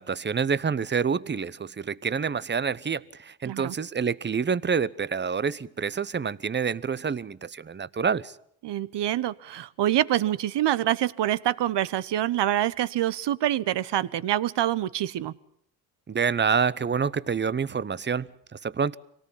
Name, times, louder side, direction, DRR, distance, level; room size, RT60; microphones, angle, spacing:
voice 1, 0.0-8.4 16.1-19.0, right 6 dB, 20° right, 0.8 m, -27 dB
voice 2, 3.4-3.7 8.6-15.3, right 12 dB, 55° right, 1.0 m, -26 dB
25.0 x 18.5 x 7.2 m
supercardioid pair, 65°, 50 cm